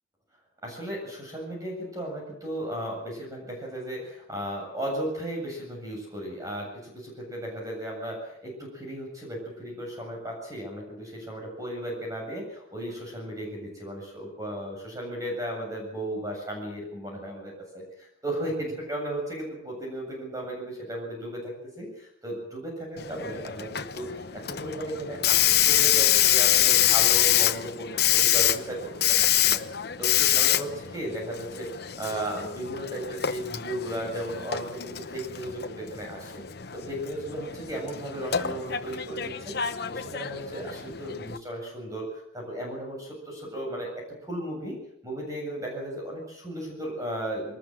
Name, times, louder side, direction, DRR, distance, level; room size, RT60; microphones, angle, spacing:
voice 1, 0.6-27.9 28.1-28.8 29.1-36.4 36.7-44.8 45.0-47.6, right 1 dB, 15° right, -1 dB, 7.7 m, -35 dB
Hiss, 23.0-41.4, left 12 dB, 55° left, 0.9 m, -26 dB
22.0 x 20.0 x 7.6 m, 0.74 s
head